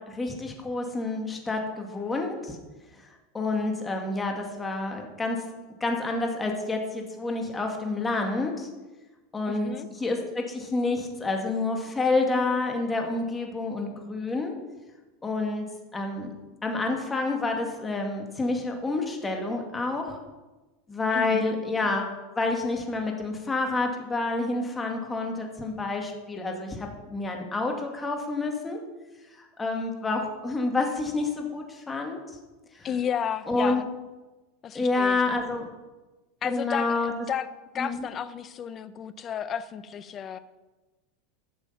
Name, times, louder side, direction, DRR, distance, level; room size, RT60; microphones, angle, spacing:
voice 1, 0.1-2.6 2.9-3.1 3.3-5.4 5.8-8.7 9.3-9.7 10.0-14.5 15.2-15.7 15.9-16.3 16.6-20.2 20.9-22.1 22.4-28.8 29.3-32.2 32.7-32.9 33.5-33.8 34.7-35.6 36.4-37.1 37.8-38.0, left 3 dB, 15° left, 2 dB, 2.1 m, -28 dB
voice 2, 9.5-9.9 21.1-21.6 32.8-33.8 34.6-35.2 36.4-37.0 37.3-37.5 37.7-40.4, left 8 dB, 35° left, 14 dB, 0.7 m, -32 dB
12.0 x 7.0 x 5.7 m, 1.2 s
hypercardioid pair, 105°, 0 cm